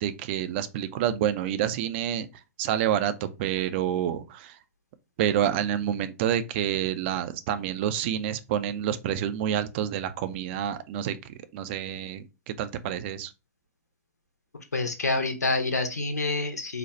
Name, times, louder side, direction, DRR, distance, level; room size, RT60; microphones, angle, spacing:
voice 1, 0.0-2.3 2.6-4.5 5.2-11.2 11.5-13.3, right 10 dB, 45° right, 0.5 m, -28 dB
voice 2, 14.7-16.8, left 3 dB, 85° left, 0.9 m, -27 dB
4.1 x 2.3 x 4.2 m
figure-of-eight pair, 115°, 9 cm